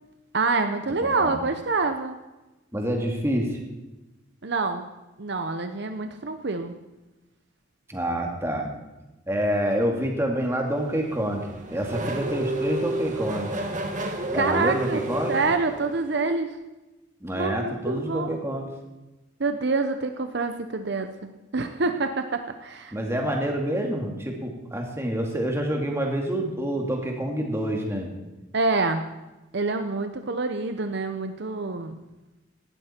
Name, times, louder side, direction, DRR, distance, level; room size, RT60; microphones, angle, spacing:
voice 1, 0.3-2.2 4.4-4.8 5.2-6.7 14.0-15.0 15.3-16.5 17.3-18.4 19.4-21.1 21.5-22.9 28.5-29.1 29.5-32.0, right 3 dB, 60° right, 7 dB, 0.8 m, -26 dB
voice 2, 0.9-1.4 2.7-3.6 7.9-8.7 9.3-13.7 14.3-15.4 17.2-18.7 22.9-28.1, equal, 15° right, 1 dB, 2.3 m, -27 dB
Race car auto racing / Accelerating revving vroom, 10.7-16.3, right 1 dB, 40° right, 1.9 m, -31 dB
18.0 x 13.0 x 4.5 m, 1.1 s
head